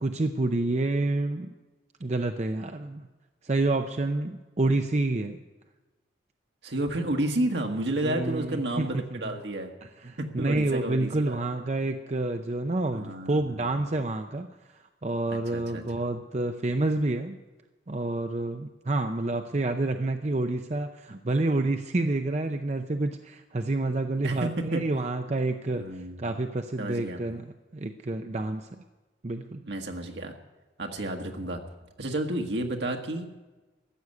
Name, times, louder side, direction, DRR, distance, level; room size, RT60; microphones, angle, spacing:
voice 1, 0.0-1.5 2.0-3.1 3.4-5.4 8.0-9.4 10.0-14.5 14.7-17.4 17.9-28.8 29.2-29.6, right 2 dB, 35° right, 6 dB, 0.6 m, -28 dB
voice 2, 6.6-9.7 10.2-11.4 12.9-13.9 15.3-15.8 24.2-24.8 25.7-26.3 26.8-27.2 29.6-30.3 30.8-31.6 32.0-33.3, right 1 dB, 70° right, 3 dB, 1.7 m, -31 dB
14.5 x 8.0 x 9.7 m, 1.2 s
head